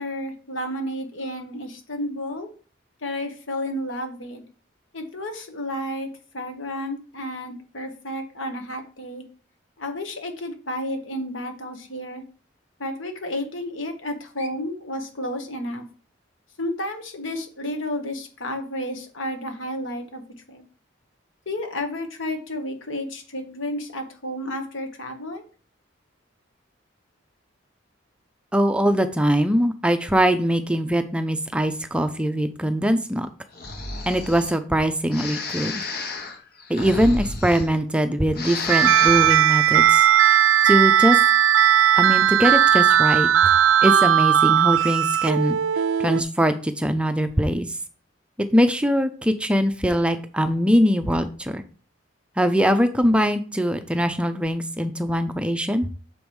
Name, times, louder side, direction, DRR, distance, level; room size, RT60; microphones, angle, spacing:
voice 1, 0.0-2.5 3.0-4.4 4.9-6.1 6.3-9.2 9.8-12.2 12.8-15.8 16.6-20.2 20.5-20.6 21.4-25.4, left 1 dB, 80° left, 5 dB, 1.4 m, -31 dB
voice 2, 28.5-33.3 34.1-35.8 36.7-40.1 40.6-41.2 42.0-43.3 43.8-45.6 46.0-47.8 48.5-51.6 52.4-55.9, equal, 5° right, 8 dB, 0.4 m, -22 dB
Breathing, 33.5-34.5 35.1-38.0 38.3-39.4, left 3 dB, 50° left, 1.2 m, -31 dB
sound 1, 38.7-46.2, right 10 dB, 80° right, 0.4 m, -17 dB
6.3 x 4.6 x 5.2 m, 0.39 s
head